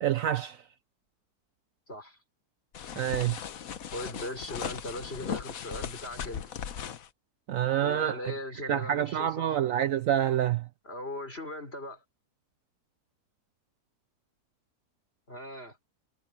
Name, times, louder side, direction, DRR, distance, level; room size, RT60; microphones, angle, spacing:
voice 1, 0.0-0.6 3.0-3.4 7.5-8.3 8.7-10.7, right 11 dB, 65° right, 0.9 m, -27 dB
voice 2, 1.9-2.2 3.9-6.5 7.8-9.6 10.8-12.0 15.3-15.8, left 1 dB, 40° left, 6.2 m, -39 dB
sound 1, 2.7-7.1, left 8 dB, 60° left, 1.3 m, -38 dB
omnidirectional pair, 1.7 m